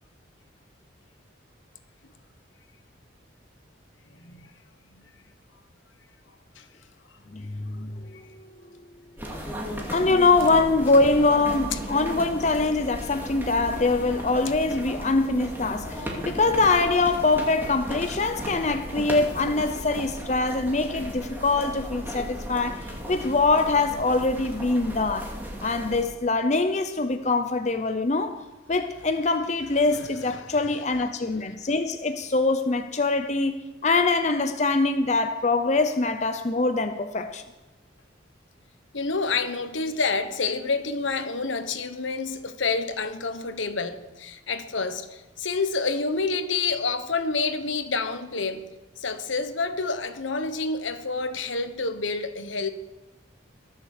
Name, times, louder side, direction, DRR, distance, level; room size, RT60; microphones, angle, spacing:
voice 1, 4.2-4.5 4.9-5.0 6.6-6.7 11.7-11.8 29.9-30.5 38.9-48.6 49.0-52.7, left 4 dB, 85° left, 1.2 m, -28 dB
voice 2, 7.3-8.3 9.9-25.3 25.6-28.3 28.7-37.4, left 3 dB, 35° left, 0.7 m, -23 dB
sound 1, 9.2-26.0, equal, 10° right, 2.4 m, -35 dB
22.0 x 7.3 x 6.7 m
head